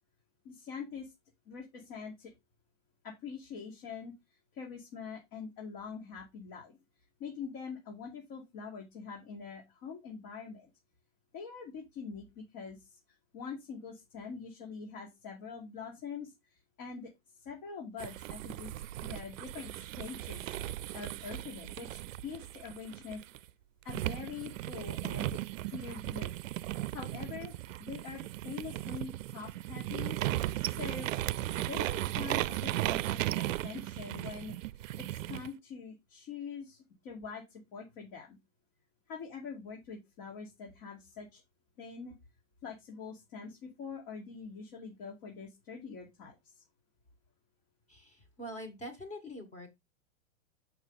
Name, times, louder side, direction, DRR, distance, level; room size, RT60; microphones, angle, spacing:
voice 1, 0.4-1.1 1.5-2.3 3.0-4.1 4.5-6.8 7.2-10.7 11.3-13.0 13.3-17.1 17.4-18.7 19.0-23.2 23.8-25.4 25.7-26.3 26.9-27.5 27.8-30.2 30.6-31.1 31.7-34.6 35.0-38.4 39.1-41.4 41.8-42.1 42.6-46.5, left 5 dB, 40° left, 2.5 m, -44 dB
sound 1, 18.0-23.4 23.9-35.5, right 15 dB, 70° right, 0.5 m, -36 dB
voice 2, 47.9-49.7, equal, 15° left, 1.9 m, -44 dB
6.6 x 5.5 x 4.0 m
hypercardioid pair, 130°, 41 cm